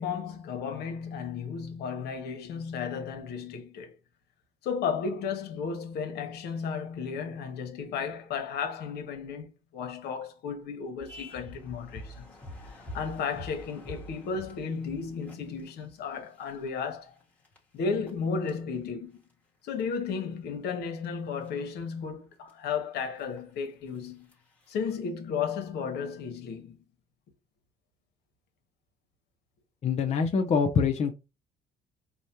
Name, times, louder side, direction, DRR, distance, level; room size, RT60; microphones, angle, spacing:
voice 1, 0.0-3.9 4.6-12.3 12.7-17.1 17.7-19.2 19.6-24.3 24.7-26.8, left 6 dB, 75° left, 1.0 m, -34 dB
sound 1, 11.0-16.0 16.4-16.9 17.2-17.6 18.1-18.2 18.5-18.6 19.8-20.3 21.0-21.1 21.3-21.5 22.5-22.6 22.8-22.9 23.2-23.4 24.3-24.4 24.7-25.0, equal, 10° left, 1.3 m, -46 dB
voice 2, 29.8-31.1, left 5 dB, 40° left, 0.6 m, -25 dB
4.8 x 2.2 x 2.8 m
cardioid pair, 110°, 17 cm